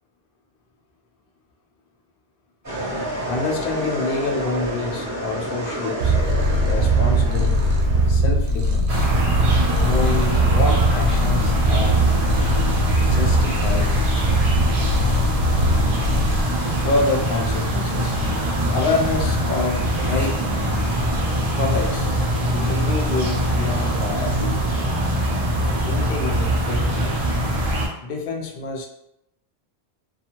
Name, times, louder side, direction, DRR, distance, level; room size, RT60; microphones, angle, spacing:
sound 1, 2.6-8.1, right 1 dB, 15° right, 1.3 m, -29 dB
voice 1, 3.3-6.1 6.7-7.6 8.1-9.1 9.8-12.0 13.0-14.0 16.8-18.2 18.7-20.4 21.5-22.1 22.5-24.7 25.9-27.2 28.0-28.9, left 3 dB, 60° left, 1 dB, 0.6 m, -27 dB
Purr, 6.0-16.4, right 1 dB, 85° right, 0.9 m, -20 dB
sound 2, 8.9-27.9, right 1 dB, 45° right, 0.5 m, -23 dB
2.5 x 2.4 x 2.8 m, 0.82 s
omnidirectional pair, 1.1 m